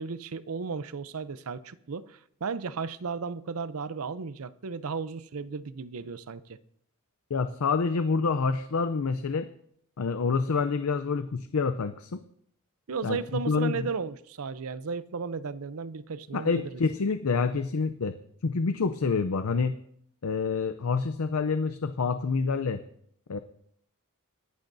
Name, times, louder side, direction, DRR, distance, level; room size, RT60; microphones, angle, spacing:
voice 1, 0.0-6.6 12.9-16.7, right 5 dB, 75° right, 15 dB, 0.6 m, -35 dB
voice 2, 7.3-9.5 10.0-12.2 13.0-13.2 13.5-13.9 16.3-18.2 18.4-19.8 20.2-22.8 23.3-23.4, left 4 dB, 80° left, 10 dB, 0.6 m, -27 dB
22.0 x 11.5 x 2.7 m, 0.67 s
head